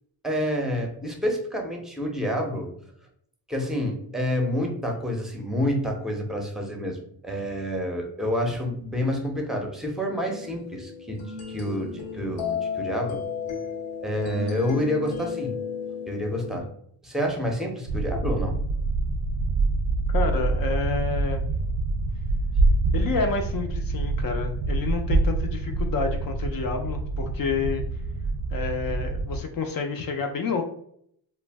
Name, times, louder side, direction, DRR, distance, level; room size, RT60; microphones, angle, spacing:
voice 1, 0.2-2.7 3.5-7.0 7.2-11.2 11.5-13.2 14.0-15.5 16.1-16.7 17.0-18.6, equal, ahead, 2 dB, 0.6 m, -28 dB
sound 1, 10.2-16.6, left 6 dB, 85° left, 0.8 m, -34 dB
sound 2, 17.9-29.4, right 3 dB, 85° right, 0.6 m, -26 dB
voice 2, 20.1-21.4 22.9-27.8 28.5-30.6, left 5 dB, 50° left, 4 dB, 0.5 m, -29 dB
2.4 x 2.1 x 3.3 m, 0.68 s
cardioid pair, 90°, 46 cm